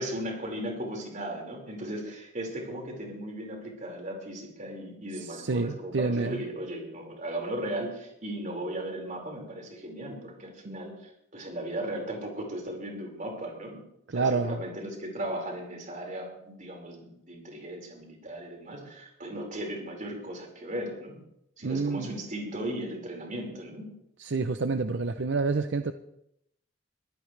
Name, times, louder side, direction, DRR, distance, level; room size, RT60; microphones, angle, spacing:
voice 1, 0.0-13.8 14.1-21.2 21.6-23.9, right 1 dB, 45° right, 0 dB, 5.1 m, -37 dB
voice 2, 5.1-6.4 10.7-10.8 14.1-14.6 21.6-22.2 24.2-25.9, right 4 dB, 75° right, 9 dB, 0.7 m, -28 dB
23.5 x 15.0 x 3.4 m, 0.77 s
head